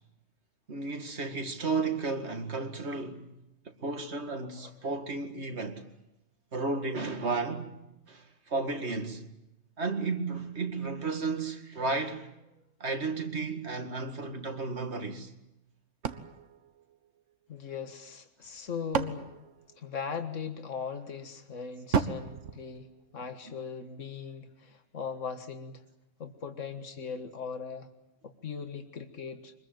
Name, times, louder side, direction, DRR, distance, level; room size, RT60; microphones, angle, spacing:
voice 1, 0.7-3.3 3.8-5.8 6.5-7.8 8.1-9.2 9.8-12.3 12.8-15.3 23.5-23.6, right 3 dB, 60° right, 2.4 m, -33 dB
sound 1, 16.0-17.6 18.4-20.4 21.9-23.5, right 6 dB, 75° right, 1.5 m, -35 dB
voice 2, 17.5-19.4 19.8-25.8 26.2-27.9 28.2-29.5, left 6 dB, 85° left, 2.0 m, -39 dB
24.5 x 21.0 x 9.2 m
omnidirectional pair, 1.3 m